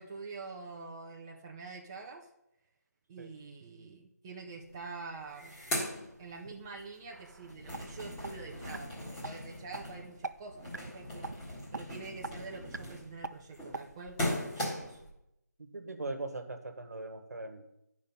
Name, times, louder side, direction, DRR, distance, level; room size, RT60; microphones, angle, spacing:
voice 1, 0.0-2.3 3.1-5.6 6.2-11.3 11.7-15.0, right 4 dB, 15° right, -1 dB, 0.5 m, -46 dB
sound 1, 4.7-4.8 5.1-6.8 7.2-15.1, left 1 dB, 10° left, 1.7 m, -39 dB
sound 2, 7.1-7.9 8.2-8.3 8.7-8.8 9.2-9.3 9.7-9.8 10.2-10.3 10.7-10.9 11.2-11.4 11.7-11.8 12.2-12.3 12.7-12.8 13.2-13.3 13.7-13.8, right 3 dB, 85° right, 0.5 m, -39 dB
voice 2, 15.7-17.6, right 2 dB, 65° right, 7 dB, 1.3 m, -40 dB
10.5 x 5.2 x 5.6 m, 0.85 s
figure-of-eight pair, 165°, 9 cm